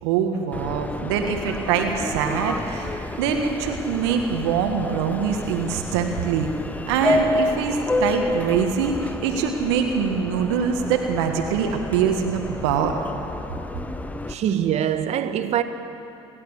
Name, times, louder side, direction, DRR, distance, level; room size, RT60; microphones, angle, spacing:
voice 1, 0.0-6.5 6.9-12.9, right 7 dB, 75° right, 1.6 m, -24 dB
Subway metro underground, 0.5-14.3, left 1 dB, 10° left, 1.0 m, -30 dB
voice 2, 14.3-15.6, right 10 dB, 50° right, 1.3 m, -23 dB
29.0 x 12.0 x 7.3 m
hypercardioid pair, 70°, 14 cm